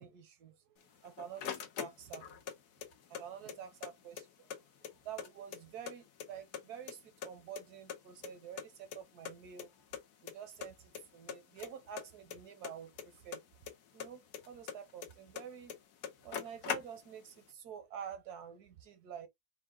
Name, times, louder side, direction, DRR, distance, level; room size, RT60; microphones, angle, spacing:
voice 1, 0.0-2.4 3.1-4.3 4.9-9.7 10.2-13.4 13.9-15.7 16.2-19.3, right 8 dB, 75° right, 1.4 m, -48 dB
sound 1, 0.8-2.5 2.8-3.9 4.2-4.3 4.5-5.9 6.2-6.9 7.2-8.7 8.9-9.0 9.3-9.4 9.6-9.7 9.9-10.3 10.6-11.0 11.3-13.7 14.0-15.4 15.7-17.3, left 8 dB, 75° left, 1.3 m, -41 dB
4.6 x 2.4 x 3.6 m
omnidirectional pair, 1.7 m